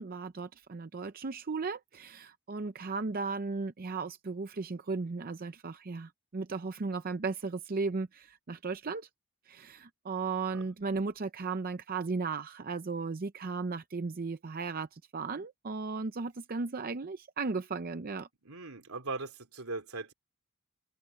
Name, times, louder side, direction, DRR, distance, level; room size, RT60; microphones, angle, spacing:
voice 1, 0.0-9.1 9.5-18.3, right 4 dB, 45° right, 0.6 m, -36 dB
voice 2, 18.5-20.1, right 3 dB, 80° right, 3.5 m, -39 dB
head